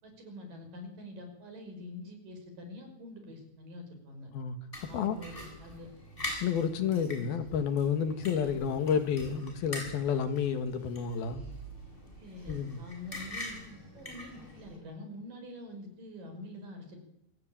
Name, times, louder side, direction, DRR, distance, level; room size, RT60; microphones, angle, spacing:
voice 1, 0.0-4.3 4.9-5.9 7.2-7.4 12.2-17.0, left 1 dB, 60° right, 7.3 m, -46 dB
sound 1, 4.7-14.8, left 1 dB, 15° left, 7.2 m, -44 dB
voice 2, 4.8-5.2 6.4-11.4 12.5-12.8, left 7 dB, 75° left, 3.7 m, -30 dB
26.0 x 19.0 x 9.0 m
omnidirectional pair, 4.4 m